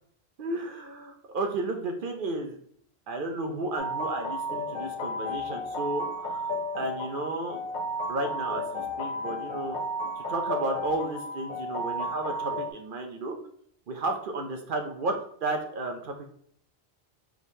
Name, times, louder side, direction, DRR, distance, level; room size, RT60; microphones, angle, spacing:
voice 1, 0.4-2.6 3.1-6.4 6.8-7.6 8.1-9.8 10.2-13.4 13.9-15.1 15.4-16.3, right 2 dB, 60° right, 4 dB, 0.7 m, -33 dB
sound 1, 3.8-12.7, equal, 55° left, 0.7 m, -33 dB
5.0 x 3.6 x 2.7 m, 0.63 s
omnidirectional pair, 1.1 m